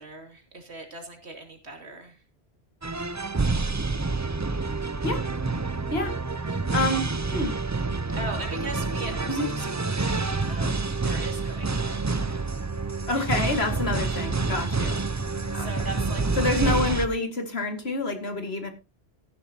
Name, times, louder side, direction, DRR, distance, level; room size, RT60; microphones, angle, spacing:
voice 1, 0.0-2.2 6.5-6.7 8.2-12.3 13.1-13.3 15.5-17.1, right 2 dB, 90° right, 3.1 m, -40 dB
sound 1, 2.8-17.1, right 3 dB, 20° right, 0.5 m, -28 dB
voice 2, 6.7-7.5 9.4-9.5 13.1-15.0 15.5-15.7 16.4-18.7, left 2 dB, 70° left, 2.4 m, -27 dB
14.5 x 11.5 x 2.9 m
omnidirectional pair, 1.1 m